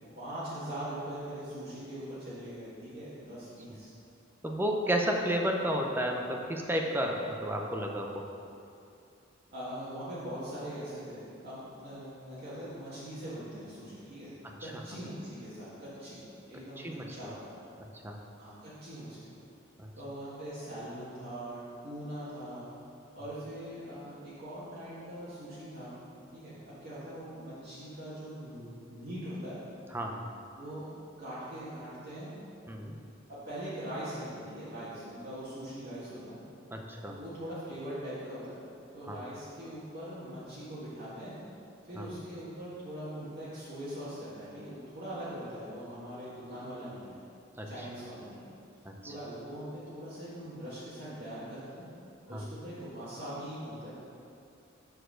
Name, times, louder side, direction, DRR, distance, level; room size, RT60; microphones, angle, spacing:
voice 1, 0.1-3.9 9.5-14.3 14.6-16.2 16.5-17.5 18.4-19.2 19.9-22.7 23.1-26.0 26.3-29.6 30.5-30.9 31.2-32.3 33.3-36.4 37.1-38.6 38.9-41.4 41.8-47.2 47.6-48.4 49.0-51.9 52.3-53.9, equal, 50° right, -11 dB, 1.8 m, -41 dB
voice 2, 4.4-8.3 14.6-14.7 16.8-17.2 17.9-18.1 19.8-19.9 29.9-30.2 32.7-32.9 36.7-37.1 39.1-39.2 42.0-42.1 47.6-47.7 48.9-49.1 52.3-52.4, equal, 10° right, 1 dB, 0.6 m, -32 dB
6.7 x 4.6 x 6.3 m, 2.6 s
head